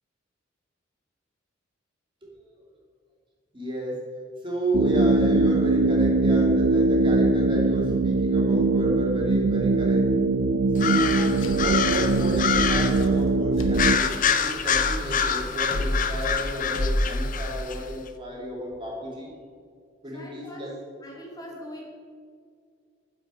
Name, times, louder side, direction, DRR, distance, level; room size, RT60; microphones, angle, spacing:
voice 1, 3.5-4.1 4.4-10.1 10.7-19.3 20.0-20.8, equal, 25° right, -3 dB, 2.6 m, -31 dB
sound 1, 4.7-14.0, right 3 dB, 60° right, 0.4 m, -22 dB
sound 2, 10.8-13.1 13.7-17.8, left 7 dB, 45° left, 0.6 m, -26 dB
sound 3, 10.9-17.8, left 1 dB, 85° left, 1.1 m, -31 dB
voice 2, 20.1-20.7 21.0-22.0, equal, 20° left, -1 dB, 1.2 m, -41 dB
9.3 x 7.6 x 5.5 m, 2.1 s
head